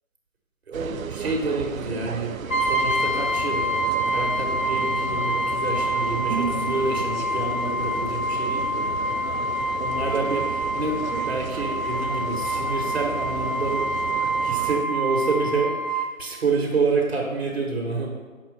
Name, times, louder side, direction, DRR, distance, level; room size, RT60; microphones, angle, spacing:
voice 1, 0.7-9.1 9.8-11.0 11.2-13.8 14.4-18.1, right 3 dB, 50° right, 0 dB, 1.4 m, -28 dB
sound 1, 0.7-14.9, right 7 dB, 75° right, 0.6 m, -34 dB
Brass instrument, 2.5-16.1, right 1 dB, 75° left, 1.2 m, -26 dB
6.4 x 4.3 x 6.4 m, 1.4 s
figure-of-eight pair, 165°, 41 cm